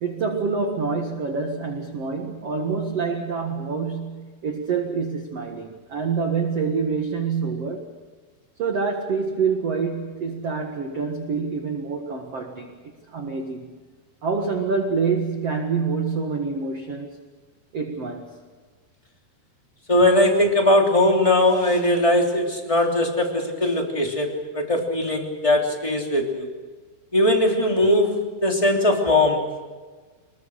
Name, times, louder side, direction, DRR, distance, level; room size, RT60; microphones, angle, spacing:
voice 1, 0.0-7.9 8.6-12.8 13.1-13.7 14.2-17.1 17.7-18.3, right 5 dB, 50° right, 2 dB, 2.2 m, -26 dB
voice 2, 19.9-26.5 27.1-29.7, left 1 dB, 10° left, 1 dB, 2.5 m, -20 dB
26.0 x 21.5 x 6.5 m, 1.4 s
omnidirectional pair, 4.7 m